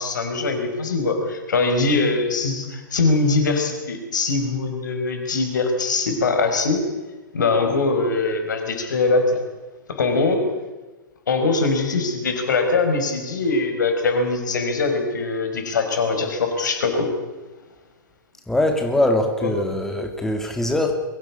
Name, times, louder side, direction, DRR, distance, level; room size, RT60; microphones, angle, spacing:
voice 1, 0.0-6.8 7.3-9.4 9.9-10.5 11.3-17.1 19.4-19.5, left 3 dB, 65° left, 6 dB, 5.2 m, -22 dB
voice 2, 18.5-20.9, left 1 dB, 5° left, 3 dB, 2.4 m, -22 dB
23.0 x 17.0 x 8.8 m, 1.2 s
figure-of-eight pair, 110°, 11 cm